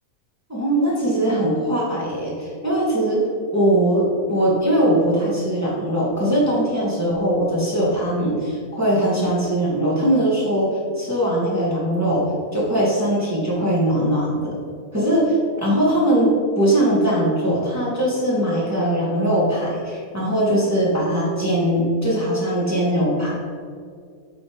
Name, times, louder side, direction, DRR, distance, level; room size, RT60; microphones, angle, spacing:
voice 1, 0.5-3.2 3.5-10.7 11.0-14.5 14.9-16.3 16.6-23.3, right 1 dB, 10° right, -7 dB, 1.9 m, -20 dB
8.2 x 4.8 x 5.1 m, 2.1 s
omnidirectional pair, 1.5 m